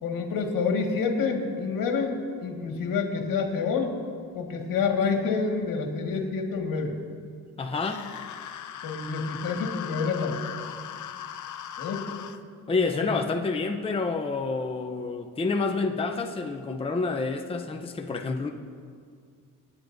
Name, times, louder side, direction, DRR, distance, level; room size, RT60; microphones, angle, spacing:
voice 1, 0.0-4.0 4.3-7.0 8.8-10.4 11.8-12.1 12.9-13.1, left 5 dB, 75° left, 2 dB, 1.9 m, -28 dB
voice 2, 7.6-8.0 12.7-18.5, left 4 dB, 15° left, 4 dB, 0.7 m, -28 dB
sound 1, 7.8-12.4, left 9 dB, 60° left, 0.7 m, -38 dB
26.0 x 9.6 x 2.7 m, 2.1 s
cardioid pair, 125°, 34 cm